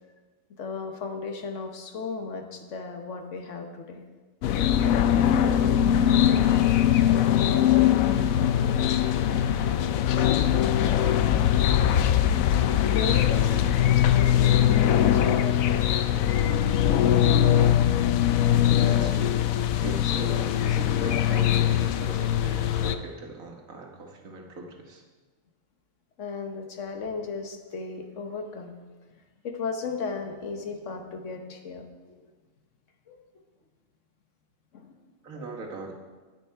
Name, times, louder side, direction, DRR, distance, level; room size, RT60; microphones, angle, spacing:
voice 1, 0.6-4.1 12.8-16.4 26.2-28.7 29.4-32.3 33.1-33.4 34.7-34.9, left 4 dB, 65° left, 5 dB, 1.3 m, -35 dB
sound 1, 4.4-22.9, left 10 dB, 90° left, 1.0 m, -21 dB
voice 2, 6.0-9.2 9.6-10.4 18.6-25.0 35.2-35.9, right 3 dB, 90° right, 1 dB, 1.8 m, -41 dB
9.9 x 9.0 x 4.5 m, 1.3 s
omnidirectional pair, 1.4 m